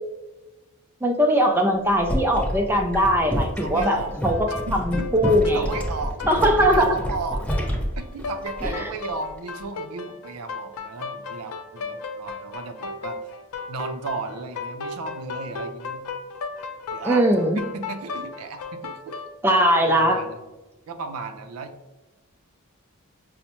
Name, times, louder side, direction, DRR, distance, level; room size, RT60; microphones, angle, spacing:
voice 1, 1.0-5.6 6.3-6.9 8.6-8.7 17.0-17.6 19.4-20.2, equal, 10° right, 2 dB, 0.3 m, -20 dB
sound 1, 1.8-9.0 9.3-9.6, equal, 5° left, 0.9 m, -29 dB
voice 2, 3.5-4.1 4.7-6.2 6.5-7.4 8.0-13.2 13.7-16.0 16.9-17.3 17.5-19.2 19.8-20.4 20.9-21.7, right 4 dB, 75° right, 7 dB, 0.4 m, -34 dB
sound 2, 3.6-19.3, left 4 dB, 80° left, 0.4 m, -35 dB
5.5 x 2.0 x 2.9 m, 1.1 s
head